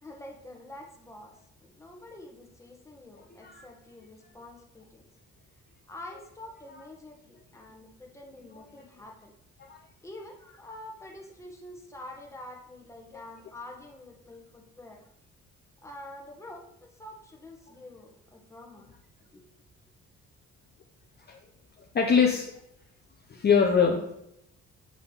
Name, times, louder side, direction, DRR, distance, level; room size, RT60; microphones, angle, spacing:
voice 1, 0.0-5.1 5.9-9.3 10.0-15.1 15.8-19.4, left 1 dB, 10° left, 1 dB, 1.2 m, -47 dB
voice 2, 21.8-22.5 23.3-24.2, left 6 dB, 35° left, 1 dB, 0.7 m, -24 dB
7.4 x 3.5 x 4.0 m, 0.78 s
cardioid pair, 90°, 30 cm